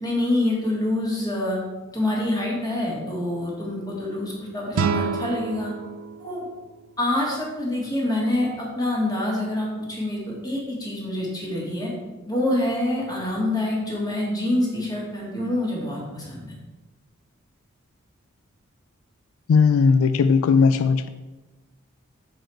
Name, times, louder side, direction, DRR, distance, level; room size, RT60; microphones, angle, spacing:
voice 1, 0.0-1.6 1.9-5.7 6.2-6.4 7.0-11.9 12.3-16.5, left 1 dB, 20° left, -3 dB, 1.7 m, -26 dB
sound 1, 4.7-7.8, right 5 dB, 80° right, 0.4 m, -29 dB
voice 2, 19.5-21.1, left 5 dB, 85° left, 11 dB, 0.3 m, -17 dB
6.2 x 4.7 x 4.4 m, 1.2 s
head